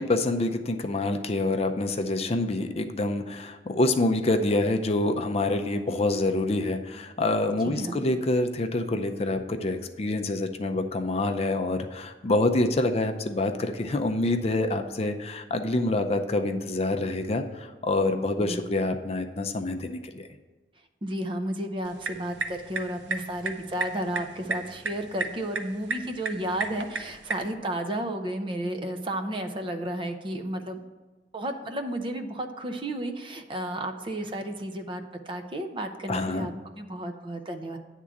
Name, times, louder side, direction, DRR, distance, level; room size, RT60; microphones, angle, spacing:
voice 1, 0.0-20.3 36.1-36.5, left 2 dB, 35° left, 6 dB, 0.5 m, -26 dB
voice 2, 7.6-8.0 18.4-18.6 21.0-30.8 31.3-37.8, right 1 dB, 30° right, 5 dB, 0.6 m, -32 dB
sound 1, 21.8-27.5, right 3 dB, 85° right, 0.7 m, -35 dB
9.7 x 3.7 x 7.0 m, 1.2 s
head